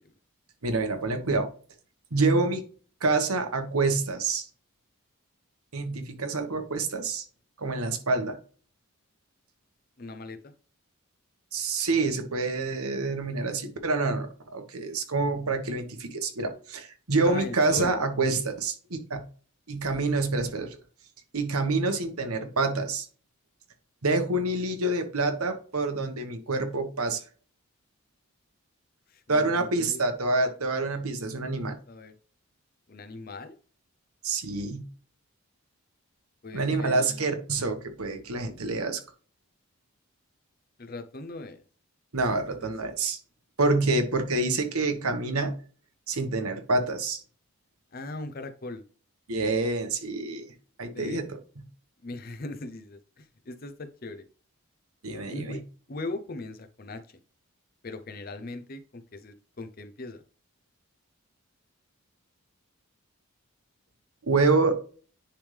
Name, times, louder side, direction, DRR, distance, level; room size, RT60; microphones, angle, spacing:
voice 1, 0.6-1.5 2.1-2.6 3.0-4.5 5.7-7.2 7.6-8.4 11.5-19.2 19.7-20.8 21.3-23.1 24.0-27.2 29.3-31.7 34.2-34.9 36.5-39.0 42.1-43.2 43.6-45.5 46.1-47.2 49.3-50.5 50.8-51.6 55.0-55.6 64.2-64.8, right 3 dB, 80° right, 6 dB, 1.3 m, -27 dB
voice 2, 10.0-10.5 17.2-18.0 29.1-30.0 31.9-32.1 32.9-33.6 36.4-37.3 40.8-41.6 47.9-48.8 50.9-51.2 52.0-54.2 55.3-55.6 55.9-57.2 57.8-60.2, left 2 dB, 40° left, 9 dB, 0.7 m, -39 dB
10.0 x 3.5 x 3.3 m, 0.41 s
head